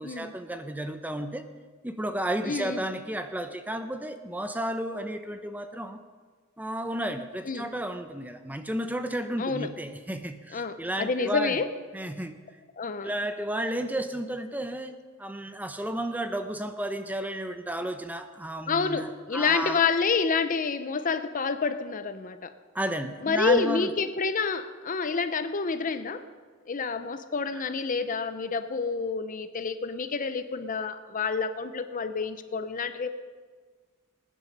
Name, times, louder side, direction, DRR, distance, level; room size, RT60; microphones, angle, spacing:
voice 1, 0.0-1.5 1.8-6.0 6.6-11.6 11.9-12.3 13.0-14.9 15.2-19.8 22.7-23.9 27.5-27.6, right 1 dB, 10° right, 8 dB, 0.6 m, -32 dB
voice 2, 2.4-2.8 7.5-7.7 9.4-9.7 10.5-11.7 12.8-13.1 18.7-22.5 23.2-26.2 26.7-33.1, left 5 dB, 40° left, 10 dB, 0.6 m, -28 dB
19.5 x 9.9 x 5.4 m, 1.5 s
head